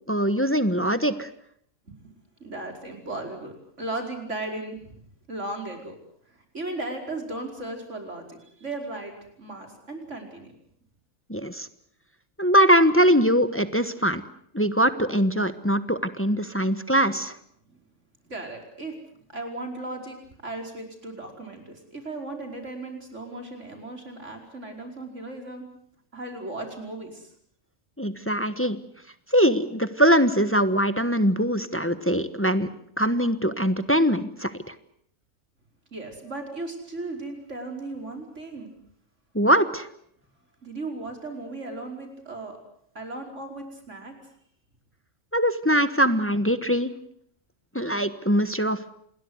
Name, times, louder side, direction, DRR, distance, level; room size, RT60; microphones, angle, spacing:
voice 1, 0.1-1.3 11.3-11.7 12.4-14.2 14.5-17.4 28.0-28.8 29.3-32.7 33.0-34.7 39.3-39.9 45.3-46.9 47.7-48.8, equal, 10° left, 11 dB, 1.2 m, -22 dB
voice 2, 2.4-5.0 5.3-6.0 6.3-9.1 9.4-10.5 17.7-17.8 18.2-25.7 26.1-27.3 35.9-38.7 40.6-42.6 43.0-44.1, right 2 dB, 65° right, 4 dB, 5.4 m, -36 dB
28.0 x 21.0 x 8.0 m, 0.66 s
omnidirectional pair, 1.3 m